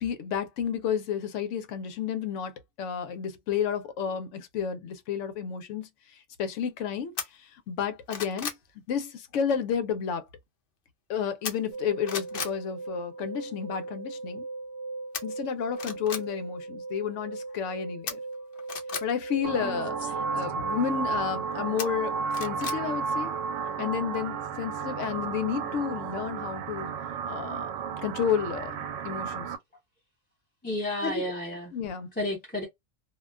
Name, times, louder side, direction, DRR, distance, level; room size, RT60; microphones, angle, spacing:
voice 1, 0.0-5.9 6.4-8.6 8.9-10.2 11.1-14.4 15.2-18.2 19.0-23.3 23.8-27.0 27.3-27.7 28.0-29.5 31.0-31.3 31.7-32.1, left 8 dB, 90° left, 0.9 m, -31 dB
sound 1, 7.2-7.3 7.8-8.6 11.4-11.8 12.1-12.6 15.1-15.2 15.7-16.2 18.1-19.0 21.8-22.8 23.2-23.3, left 6 dB, 55° left, 0.7 m, -35 dB
sound 2, 11.7-26.7 26.9-27.0, right 3 dB, 65° right, 1.1 m, -41 dB
sound 3, 19.4-29.6, right 5 dB, 90° right, 0.9 m, -33 dB
voice 2, 30.6-31.7 32.2-32.7, left 1 dB, 10° left, 0.6 m, -31 dB
2.4 x 2.2 x 2.3 m
omnidirectional pair, 1.2 m